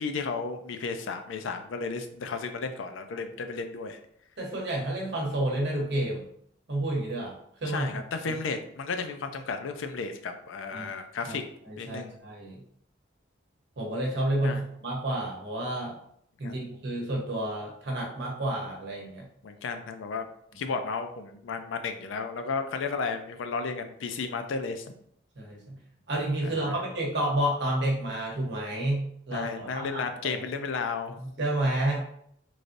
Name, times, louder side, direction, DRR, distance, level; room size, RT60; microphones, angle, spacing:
voice 1, 0.0-4.0 7.7-11.4 11.8-12.2 14.4-14.6 16.4-16.8 19.4-20.3 20.6-24.8 26.4-26.8 29.3-31.2, left 4 dB, 75° left, 7 dB, 0.4 m, -33 dB
voice 2, 4.4-6.3 6.7-7.3 7.6-8.0 10.7-10.9 11.3-11.4 11.6-12.6 13.8-15.9 16.4-19.3 25.4-25.8 26.1-30.4 31.2-32.0, right 1 dB, 60° right, -1 dB, 0.9 m, -30 dB
3.2 x 2.5 x 2.5 m, 0.68 s
head